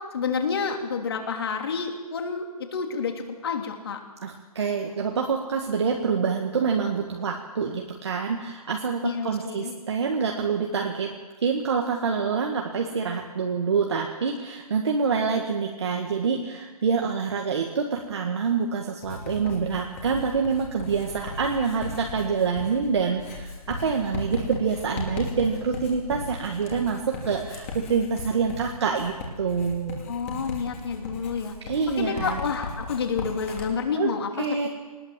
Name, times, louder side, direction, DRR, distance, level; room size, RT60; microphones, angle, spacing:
voice 1, 0.1-2.4 2.7-4.0 9.0-9.7 30.1-31.5 32.0-34.7, left 5 dB, 40° left, 4 dB, 3.0 m, -29 dB
voice 2, 4.2-11.1 11.4-30.0 31.7-32.4 34.0-34.1 34.4-34.7, right 5 dB, 45° right, 1 dB, 1.9 m, -26 dB
Writing, 19.0-33.7, left 3 dB, 20° left, 3.1 m, -37 dB
22.5 x 19.5 x 7.6 m, 1.3 s
hypercardioid pair, 175°, 20 cm